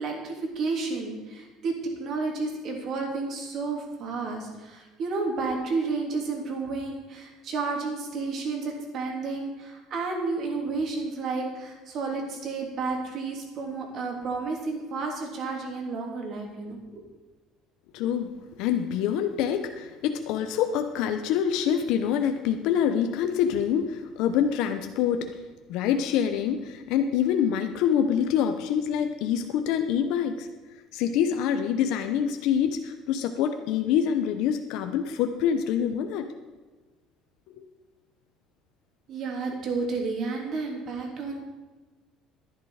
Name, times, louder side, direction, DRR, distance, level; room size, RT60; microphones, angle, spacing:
voice 1, 0.0-17.0 39.1-41.4, right 4 dB, 50° right, 1 dB, 3.1 m, -31 dB
voice 2, 17.9-18.3 18.6-25.3 25.7-30.5 30.9-36.3 37.6-37.7, left 8 dB, 75° left, 6 dB, 0.9 m, -26 dB
11.5 x 10.5 x 5.0 m, 1.3 s
cardioid pair, 125°, 0 cm